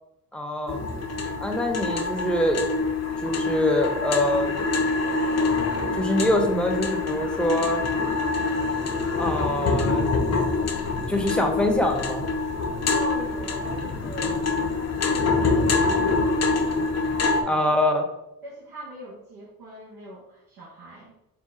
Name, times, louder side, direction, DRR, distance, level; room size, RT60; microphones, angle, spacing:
voice 1, 0.3-0.8 1.4-2.6 3.2-4.6 5.9-7.8 9.2-10.1 11.1-12.3 17.5-18.1, left 1 dB, 5° left, 3 dB, 0.8 m, -24 dB
sound 1, 0.7-17.4, left 3 dB, 45° left, 0.7 m, -25 dB
voice 2, 12.8-17.8 18.4-21.1, right 1 dB, 85° right, -8 dB, 1.2 m, -42 dB
4.1 x 2.2 x 3.9 m, 0.87 s
cardioid pair, 65°, 35 cm